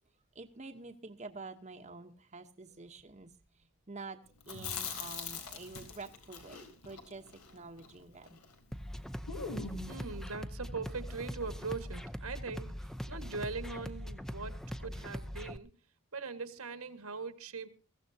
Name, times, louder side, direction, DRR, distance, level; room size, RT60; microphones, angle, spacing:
voice 1, 0.3-3.3 3.9-7.2 7.5-8.4, right 3 dB, 30° right, 1.0 m, -48 dB
Chewing mastication, 4.4-8.6 8.8-8.9 9.3-10.0, left 5 dB, 85° left, 3.8 m, -42 dB
sound 1, 8.7-15.6, equal, ahead, 0.6 m, -41 dB
voice 2, 9.9-15.7 16.1-17.7, right 4 dB, 80° right, 1.7 m, -41 dB
22.0 x 15.5 x 2.8 m
head